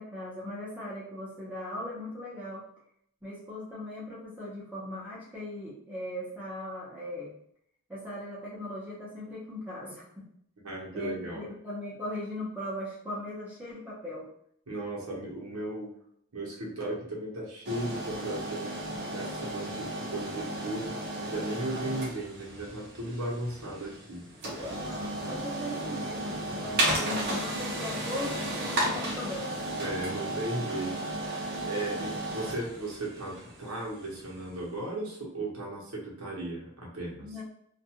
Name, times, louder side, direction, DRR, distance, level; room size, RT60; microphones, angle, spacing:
voice 1, 0.0-2.6 3.2-7.3 7.9-10.0 10.9-14.3 24.8-29.7 31.9-32.0 37.2-37.4, left 1 dB, 5° right, -8 dB, 0.8 m, -39 dB
voice 2, 10.6-11.5 14.7-15.9 16.3-20.9 21.2-24.7 26.9-27.1 29.8-37.3, right 1 dB, 80° right, -3 dB, 1.0 m, -36 dB
sound 1, 17.6-34.5, right 1 dB, 50° right, 0.7 m, -34 dB
2.4 x 2.2 x 2.9 m, 0.68 s
head